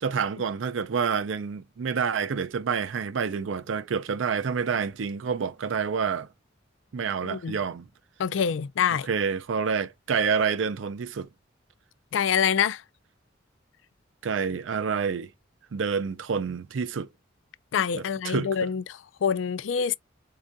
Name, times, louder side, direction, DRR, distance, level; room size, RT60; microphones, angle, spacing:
voice 1, 0.0-6.3 6.9-7.9 9.1-11.3 14.2-15.3 15.7-17.1 17.9-18.7, right 6 dB, 80° right, 0.4 m, -28 dB
voice 2, 7.2-7.6 8.2-9.1 12.1-12.8 17.7-19.9, left 7 dB, 75° left, 0.4 m, -26 dB
4.3 x 2.4 x 2.5 m
head